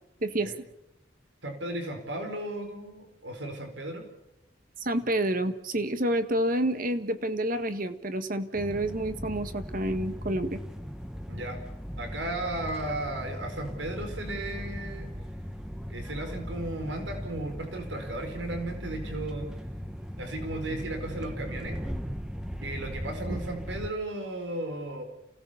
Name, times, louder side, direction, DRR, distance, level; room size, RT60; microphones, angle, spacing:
voice 1, 0.2-0.7 4.8-10.6 23.3-23.4, right 1 dB, 50° right, 10 dB, 1.7 m, -29 dB
voice 2, 1.4-4.0 11.3-11.6 12.0-15.1 15.9-19.5 20.2-21.8 22.6-25.0, right 1 dB, 80° right, 5 dB, 4.8 m, -35 dB
sound 1, 8.5-23.9, equal, 5° right, 1.1 m, -38 dB
29.0 x 17.5 x 7.2 m, 0.85 s
head